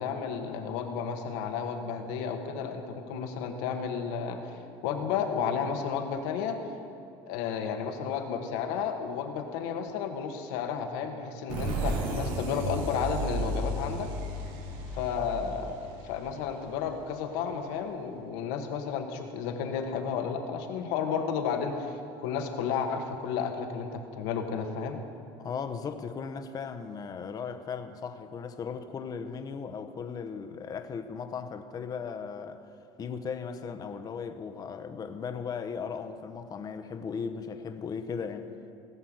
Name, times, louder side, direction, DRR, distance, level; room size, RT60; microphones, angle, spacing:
voice 1, 0.0-6.6 7.3-14.1 14.9-15.8 16.0-25.0, left 6 dB, 80° left, 1.5 m, -32 dB
sound 1, 11.5-17.0, right 1 dB, 80° right, 2.1 m, -33 dB
voice 2, 25.4-32.6 33.0-38.5, left 6 dB, 30° left, 0.8 m, -37 dB
17.5 x 5.9 x 7.9 m
supercardioid pair, 120°, 12 cm